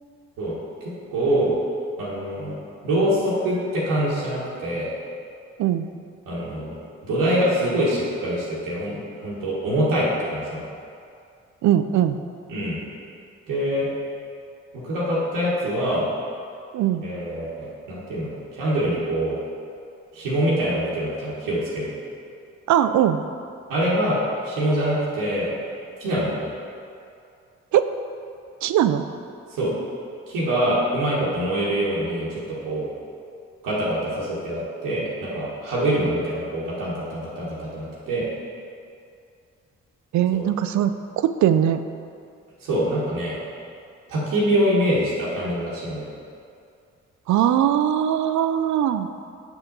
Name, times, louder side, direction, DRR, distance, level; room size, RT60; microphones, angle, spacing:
voice 1, 1.1-1.6 2.0-2.6 2.8-4.9 6.3-6.7 7.1-10.6 12.5-12.8 13.5-13.9 14.7-16.1 17.0-19.4 20.1-21.9 23.7-25.5 26.0-26.5 29.5-29.7 30.3-32.9 33.6-38.3 40.3-40.4 42.6-43.4 44.1-46.1, right 1 dB, 80° right, -8 dB, 1.3 m, -24 dB
voice 2, 11.6-12.2 16.7-17.0 22.7-23.2 27.7-27.9 28.6-29.0 40.1-41.8 47.3-49.1, right 10 dB, 60° right, 10 dB, 0.4 m, -20 dB
6.0 x 5.1 x 3.9 m, 2.4 s
hypercardioid pair, 40°, 32 cm